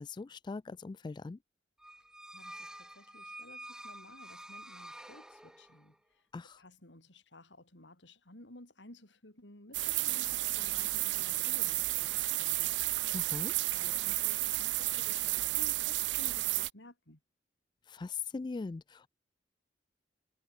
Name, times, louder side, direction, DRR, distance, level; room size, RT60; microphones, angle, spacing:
voice 1, 0.0-1.4 6.3-6.6 13.1-13.5 17.9-19.1, left 4 dB, 25° left, 0.3 m, -40 dB
sound 1, 1.8-5.9, right 1 dB, 5° right, 1.5 m, -49 dB
voice 2, 2.3-5.9 6.6-12.1 12.4-12.8 13.6-17.2, left 1 dB, 80° left, 5.0 m, -55 dB
sound 2, 9.7-16.7, right 18 dB, 75° right, 0.5 m, -32 dB
head